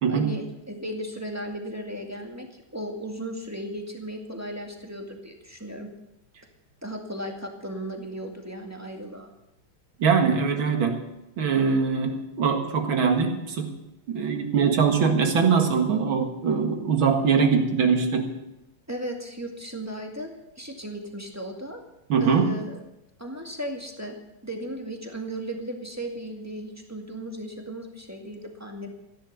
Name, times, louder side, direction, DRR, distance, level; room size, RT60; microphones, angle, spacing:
voice 1, 0.1-5.9 6.8-9.3 18.9-21.8 22.2-22.8 23.2-24.2 24.4-28.9, right 1 dB, 10° right, 2 dB, 1.8 m, -36 dB
voice 2, 10.0-11.0 11.4-13.7 14.1-18.3 22.1-22.5, right 5 dB, 65° right, 4 dB, 2.5 m, -22 dB
15.5 x 10.5 x 6.9 m, 0.88 s
omnidirectional pair, 2.4 m